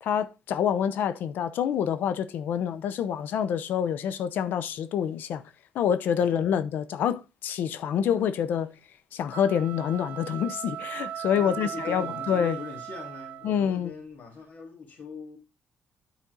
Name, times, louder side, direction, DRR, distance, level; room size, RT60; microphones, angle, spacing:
voice 1, 0.0-5.4 5.7-8.7 9.1-12.6 13.4-13.9, left 8 dB, 80° left, 0.6 m, -27 dB
voice 2, 6.2-6.6 11.3-15.4, left 5 dB, 60° left, 2.1 m, -41 dB
sound 1, 9.2-13.8, right 10 dB, 75° right, 0.6 m, -38 dB
9.3 x 4.3 x 3.8 m
cardioid pair, 125°, 3 cm